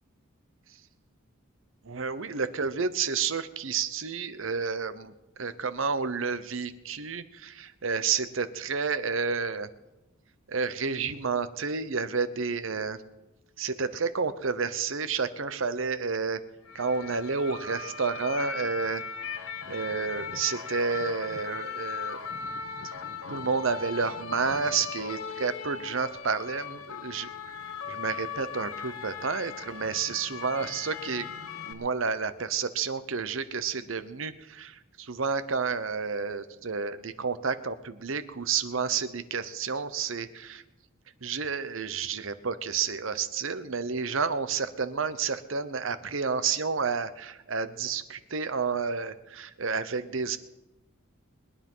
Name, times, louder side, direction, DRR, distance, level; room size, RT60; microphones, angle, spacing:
voice 1, 1.8-9.7 10.5-13.0 13.6-16.4 16.7-19.0 19.7-22.2 22.8-22.9 23.3-27.3 27.9-31.3 31.7-40.6 41.2-50.4, right 5 dB, 65° right, 13 dB, 0.9 m, -30 dB
sound 1, 16.7-31.7, left 6 dB, 90° left, 1.2 m, -38 dB
21.5 x 9.9 x 5.5 m, 0.99 s
head